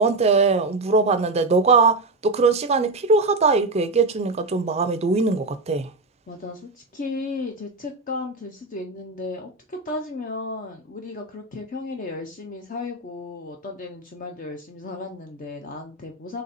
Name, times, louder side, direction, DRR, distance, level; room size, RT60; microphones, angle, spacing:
voice 1, 0.0-5.9, right 4 dB, 35° right, 0.4 m, -20 dB
voice 2, 6.3-16.4, left 3 dB, 45° left, 0.5 m, -34 dB
3.9 x 3.2 x 4.1 m
head